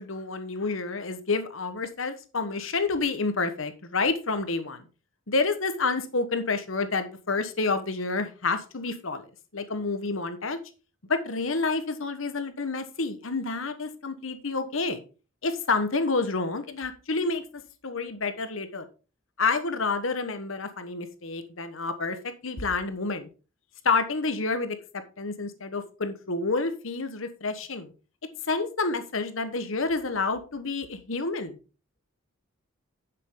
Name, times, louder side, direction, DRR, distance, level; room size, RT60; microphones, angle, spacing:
voice 1, 0.0-4.9 5.3-9.3 9.5-10.6 11.1-15.0 15.4-17.4 17.8-18.8 19.4-23.3 23.8-27.9 28.5-31.6, left 3 dB, 70° left, 10 dB, 1.3 m, -29 dB
9.8 x 7.5 x 3.8 m, 0.34 s
head